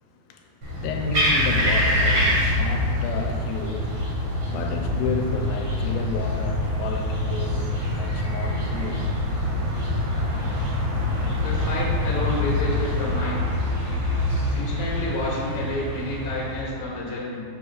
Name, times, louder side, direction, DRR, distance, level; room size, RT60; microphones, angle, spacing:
voice 1, 0.0-9.2, left 4 dB, 85° left, 2 dB, 2.5 m, -32 dB
sound 1, 0.6-16.6, left 1 dB, 45° right, 1.4 m, -25 dB
voice 2, 11.4-13.4 14.5-17.4, left 1 dB, 45° left, -5 dB, 0.7 m, -29 dB
9.9 x 6.6 x 2.4 m, 2.4 s
omnidirectional pair, 4.3 m